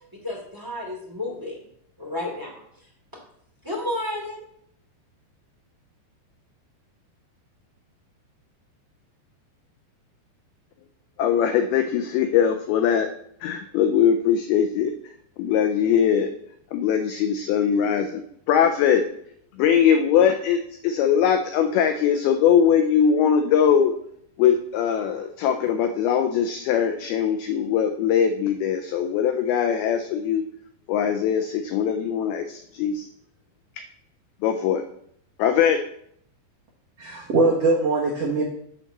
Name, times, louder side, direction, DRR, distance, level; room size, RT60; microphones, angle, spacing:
voice 1, 0.2-1.6 2.0-2.5 3.6-4.4, left 1 dB, 5° right, -3 dB, 1.8 m, -31 dB
voice 2, 11.2-13.1 13.4-14.9 15.4-16.3 16.7-18.2 18.5-19.0 19.6-23.9 24.4-30.4 30.9-33.1 34.4-34.8 35.4-35.8, left 8 dB, 85° left, 7 dB, 2.2 m, -21 dB
voice 3, 37.0-38.4, right 3 dB, 65° right, -3 dB, 1.5 m, -21 dB
11.0 x 4.0 x 7.2 m, 0.69 s
omnidirectional pair, 5.1 m